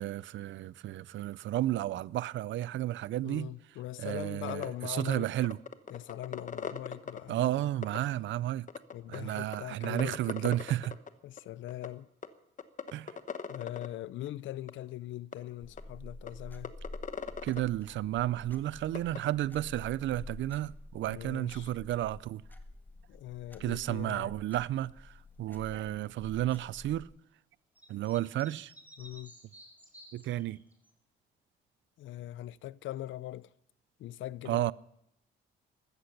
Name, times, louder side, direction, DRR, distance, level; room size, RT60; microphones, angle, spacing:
voice 1, 0.0-3.5 4.0-5.6 7.3-8.7 9.1-10.9 12.9-13.2 17.4-22.4 23.6-27.1 27.9-28.7 30.1-30.6 34.5-34.7, right 14 dB, 70° right, 0.5 m, -32 dB
voice 2, 3.2-5.3 5.9-7.7 8.9-10.6 11.2-12.1 13.4-16.7 21.1-21.7 23.1-24.3 29.0-29.3 32.0-33.5 34.0-34.7, left 14 dB, 75° left, 0.5 m, -41 dB
sound 1, 4.5-4.7 5.0-5.1 5.4-7.2 7.8-8.0 8.7-9.2 9.5-9.6 9.8-11.1 11.4-11.5 11.7-11.9 12.2-12.3 12.6-13.9 14.7-14.8 15.3-15.4 15.8-15.9 16.3-16.4 16.6-17.6 18.9-19.2, left 6 dB, 40° left, 1.1 m, -38 dB
sound 2, 15.6-27.0, left 1 dB, 10° left, 1.6 m, -49 dB
sound 3, 27.8-30.9, right 1 dB, 10° right, 4.5 m, -54 dB
14.5 x 13.5 x 6.8 m
cardioid pair, 90°, 20 cm